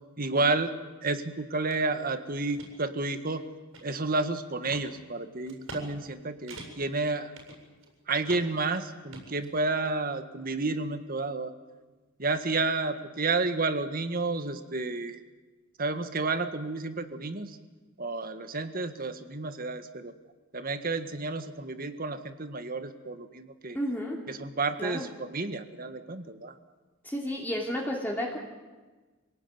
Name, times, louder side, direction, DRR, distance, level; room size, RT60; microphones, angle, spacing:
voice 1, 0.2-0.7 1.0-3.4 3.8-7.3 8.1-11.5 12.2-15.2 15.8-17.6 18.0-20.1 20.5-23.8 24.3-26.5, right 3 dB, 45° right, 9 dB, 1.7 m, -31 dB
sound 1, 1.7-1.8 2.3-2.7 3.2-4.2 4.7-4.9 5.5-5.8 6.1-6.2 6.5-6.9 7.3-7.9 8.2-8.6 9.1-9.9, right 2 dB, 80° right, 7.7 m, -45 dB
voice 2, 23.7-24.2 24.8-25.1 27.0-28.4, equal, 10° left, -2 dB, 2.9 m, -32 dB
27.0 x 18.5 x 9.6 m, 1.3 s
head